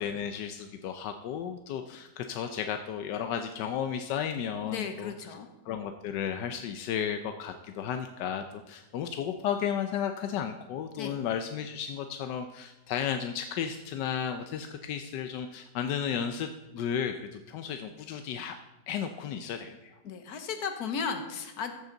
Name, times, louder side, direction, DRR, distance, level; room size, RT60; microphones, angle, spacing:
voice 1, 0.0-5.4 5.6-18.5 18.9-20.0, left 8 dB, 90° left, 7 dB, 1.3 m, -34 dB
voice 2, 4.6-5.5 11.0-11.2 20.0-21.7, left 6 dB, 65° left, 7 dB, 1.5 m, -35 dB
14.0 x 8.0 x 3.9 m, 0.98 s
omnidirectional pair, 1.8 m